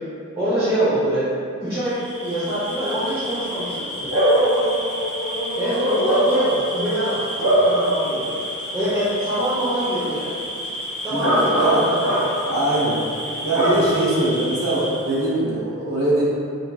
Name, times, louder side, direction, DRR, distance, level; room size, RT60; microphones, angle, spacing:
voice 1, 0.4-1.3 1.6-3.8 5.6-6.4 6.7-7.3 7.6-8.3 8.7-10.3 11.0-12.1, right 1 dB, 20° right, -15 dB, 0.8 m, -24 dB
Bark / Cricket, 1.9-15.2, equal, 70° right, 1.4 m, -24 dB
voice 2, 12.4-13.0 13.4-16.2, right 2 dB, 90° right, -8 dB, 0.9 m, -21 dB
3.9 x 3.1 x 2.3 m, 2.5 s
head